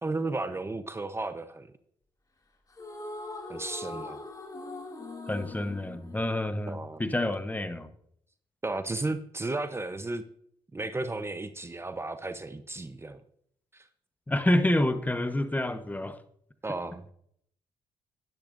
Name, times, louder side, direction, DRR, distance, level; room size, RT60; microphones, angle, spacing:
voice 1, 0.0-1.7 3.5-4.2 6.7-7.0 8.6-10.2 10.7-13.2 13.7-13.9 16.6-17.0, right 2 dB, 25° right, 11 dB, 0.8 m, -34 dB
sound 1, 2.7-7.1, left 2 dB, 35° left, 2.5 m, -41 dB
voice 2, 5.3-7.9 14.3-16.2, left 1 dB, 15° left, 10 dB, 1.1 m, -28 dB
12.0 x 10.5 x 2.6 m, 0.67 s
supercardioid pair, 50°, 11 cm